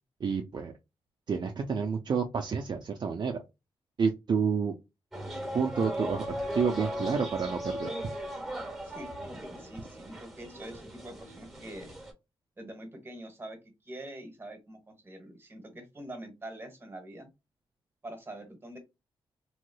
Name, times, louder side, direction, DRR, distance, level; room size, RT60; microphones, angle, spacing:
voice 1, 0.2-0.7 1.3-3.4 4.0-4.7 5.5-6.3 6.5-7.9, right 6 dB, 50° right, 0.5 m, -29 dB
sound 1, 5.1-12.1, equal, 5° right, 1.5 m, -38 dB
voice 2, 8.8-11.9 12.6-13.6 13.8-17.3 18.0-18.8, right 1 dB, 25° right, 1.2 m, -45 dB
3.1 x 3.1 x 2.2 m
wide cardioid pair, 110°, 9 cm